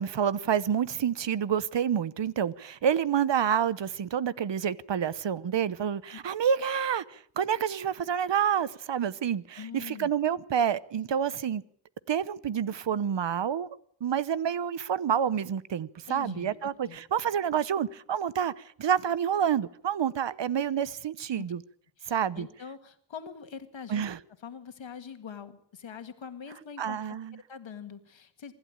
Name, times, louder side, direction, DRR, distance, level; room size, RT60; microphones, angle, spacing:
voice 1, 0.0-11.6 12.1-13.7 14.0-21.6 22.1-22.5 23.9-24.2 26.8-27.4, right 8 dB, 70° right, 0.9 m, -28 dB
voice 2, 9.6-10.1 16.1-17.0 21.4-21.5 22.0-24.1 24.4-27.0 27.5-28.5, left 7 dB, 85° left, 2.0 m, -43 dB
25.0 x 12.0 x 8.8 m
cardioid pair, 60°, 45 cm